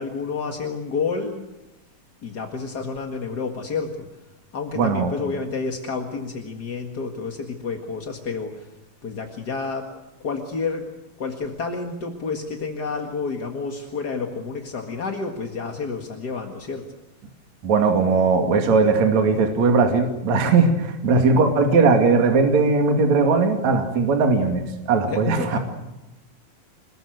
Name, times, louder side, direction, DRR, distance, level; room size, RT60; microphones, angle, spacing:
voice 1, 0.0-1.5 2.2-4.1 4.5-8.7 9.0-9.9 10.2-10.9 11.2-16.9 25.1-25.6, left 4 dB, 40° left, 3 dB, 1.7 m, -30 dB
voice 2, 4.8-5.2 17.6-25.6, right 4 dB, 55° right, 4 dB, 3.6 m, -19 dB
27.5 x 21.0 x 8.0 m, 0.97 s
omnidirectional pair, 4.2 m